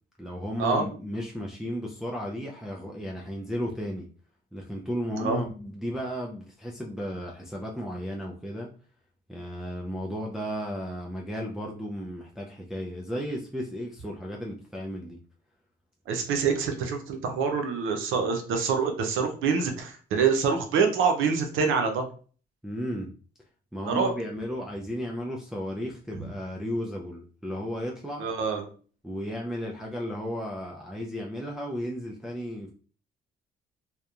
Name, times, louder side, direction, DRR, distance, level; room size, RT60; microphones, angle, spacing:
voice 1, 0.2-4.1 4.5-8.7 9.3-15.2 22.6-23.1 23.7-28.3 29.0-32.7, equal, ahead, 0.4 m, -34 dB
voice 2, 16.1-22.0 23.9-24.1 28.2-28.7, right 5 dB, 85° right, 0.6 m, -26 dB
2.8 x 2.2 x 2.3 m
cardioid pair, 90°, 20 cm